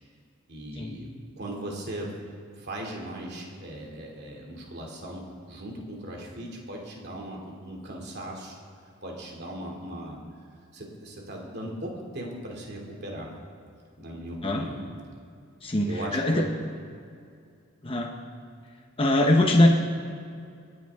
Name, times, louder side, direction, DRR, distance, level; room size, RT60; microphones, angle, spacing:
voice 1, 0.5-1.1 1.4-2.1 2.6-8.6 9.0-10.2 10.7-13.3 14.0-14.8 15.8-16.4 19.4-19.7, right 1 dB, 50° right, -1 dB, 2.6 m, -38 dB
voice 2, 15.6-16.4 17.8-18.1 19.0-19.7, left 1 dB, 25° left, 1 dB, 1.0 m, -22 dB
26.0 x 9.1 x 3.6 m, 2.3 s
head